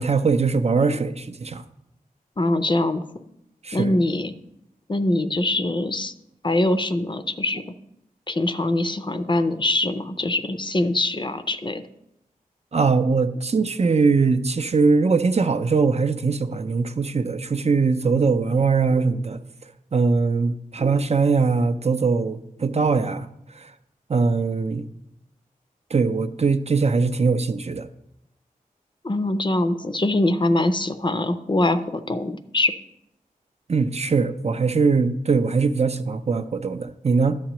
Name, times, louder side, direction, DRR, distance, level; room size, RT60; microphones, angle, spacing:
voice 1, 0.0-1.6 3.6-4.0 12.7-19.4 19.9-23.3 23.5-23.7 24.1-24.8 25.9-27.9 33.7-37.4, right 4 dB, 45° right, 10 dB, 0.5 m, -21 dB
voice 2, 2.4-3.0 3.7-4.4 4.9-6.1 6.4-7.7 8.3-11.8 29.0-32.7, left 2 dB, 30° left, 10 dB, 0.5 m, -23 dB
11.5 x 7.4 x 3.0 m, 0.80 s
wide cardioid pair, 85°, 15 cm